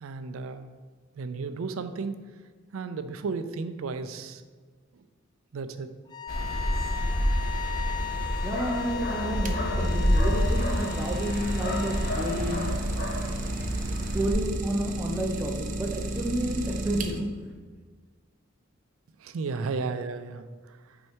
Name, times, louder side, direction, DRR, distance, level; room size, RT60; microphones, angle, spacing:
voice 1, 0.0-0.7 1.1-2.2 2.7-4.4 4.9-5.1 5.5-5.9 19.2-21.0, right 4 dB, 90° right, 10 dB, 0.4 m, -34 dB
sound 1, 6.1-12.2, left 9 dB, 20° left, 0.4 m, -37 dB
sound 2, 6.3-14.3, equal, 45° left, 1.3 m, -28 dB
voice 2, 8.4-12.6 14.1-17.3, right 1 dB, 10° right, -1 dB, 0.8 m, -30 dB
Idling, 9.2-17.5, right 2 dB, 40° right, 0.6 m, -34 dB
6.2 x 4.5 x 4.5 m, 1.4 s
head